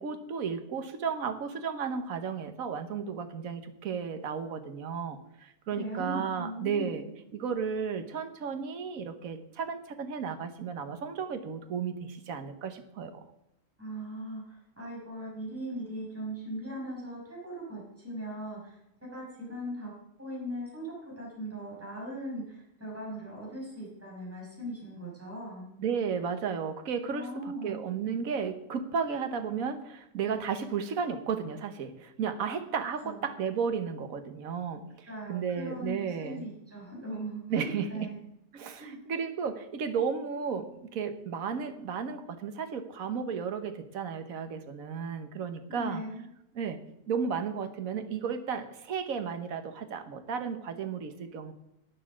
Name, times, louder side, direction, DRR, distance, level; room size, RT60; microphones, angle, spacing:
voice 1, 0.0-7.0 7.3-13.2 25.8-27.3 27.6-36.5 37.5-38.1 38.5-46.0 46.5-46.8 47.1-51.5, right 6 dB, 70° right, 8 dB, 1.5 m, -33 dB
voice 2, 5.7-7.0 13.8-18.8 19.1-19.9 20.2-25.7 27.1-27.9 33.0-33.3 35.1-38.2 38.8-39.0 45.7-46.3, right 1 dB, 10° right, -4 dB, 5.8 m, -39 dB
11.5 x 9.8 x 6.2 m, 0.84 s
omnidirectional pair, 1.6 m